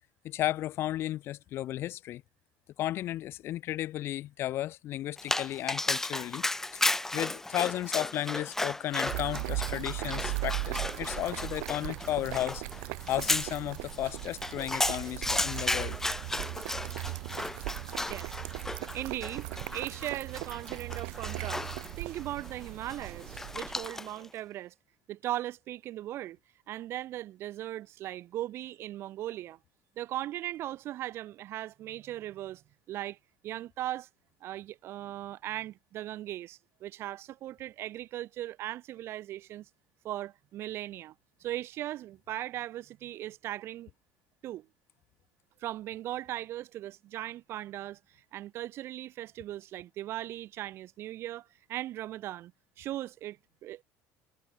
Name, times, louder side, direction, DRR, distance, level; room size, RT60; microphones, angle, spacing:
voice 1, 0.2-2.2 2.8-6.5 6.7-6.8 7.1-16.0, left 14 dB, 50° left, 0.5 m, -34 dB
Dog, 5.2-24.3, left 2 dB, 5° left, 0.9 m, -35 dB
sound 1, 9.1-23.9, right 40 dB or more, 85° right, 0.7 m, -38 dB
voice 2, 18.0-21.7 21.9-24.7 25.1-26.4 26.7-29.6 30.0-33.2 33.4-34.1 34.4-39.7 40.0-41.1 41.4-43.9 44.4-44.7 45.6-52.5 52.8-53.8, right 14 dB, 50° right, 1.7 m, -38 dB
cardioid pair, 140°, 5 cm